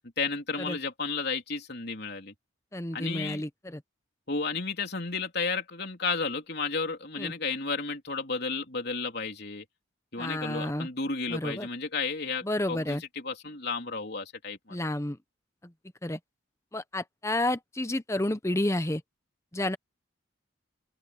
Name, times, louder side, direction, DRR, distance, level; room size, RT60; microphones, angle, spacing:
voice 1, 0.2-2.3 2.9-3.4 4.3-9.6 10.1-14.8, left 4 dB, 50° left, 3.6 m, -33 dB
voice 2, 2.7-3.8 7.2-7.3 10.2-10.9 11.3-11.7 12.4-13.0 14.7-15.2 16.0-16.2 16.7-19.0 19.5-19.8, left 1 dB, 15° left, 0.8 m, -30 dB
open air
head